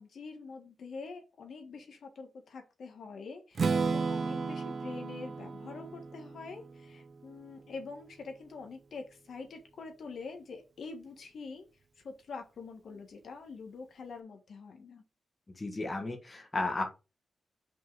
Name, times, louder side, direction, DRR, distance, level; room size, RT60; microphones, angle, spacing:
voice 1, 0.0-11.6 12.0-15.0, left 4 dB, 75° left, 4 dB, 1.5 m, -45 dB
Strum, 3.6-7.5, right 4 dB, 55° right, 0.6 m, -34 dB
voice 2, 15.6-16.9, left 2 dB, 30° left, 4 dB, 1.3 m, -34 dB
5.3 x 3.8 x 5.4 m, 0.29 s
wide cardioid pair, 105°, 0 cm